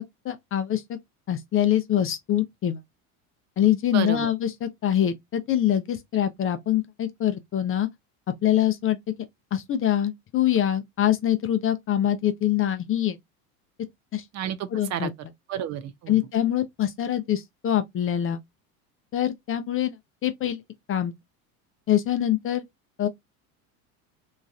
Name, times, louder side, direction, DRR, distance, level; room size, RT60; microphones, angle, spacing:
voice 1, 0.2-0.8 1.3-2.8 3.6-7.9 8.4-9.0 9.5-13.2 14.1-14.2 14.7-15.1 16.1-18.4 19.1-20.0 20.2-20.6 20.9-21.1 21.9-22.6 23.0-23.1, left 11 dB, 30° left, 0.5 m, -24 dB
voice 2, 3.9-4.3 14.3-16.2, right 10 dB, 40° right, 0.5 m, -32 dB
3.1 x 2.4 x 2.3 m
hypercardioid pair, 80°, 43 cm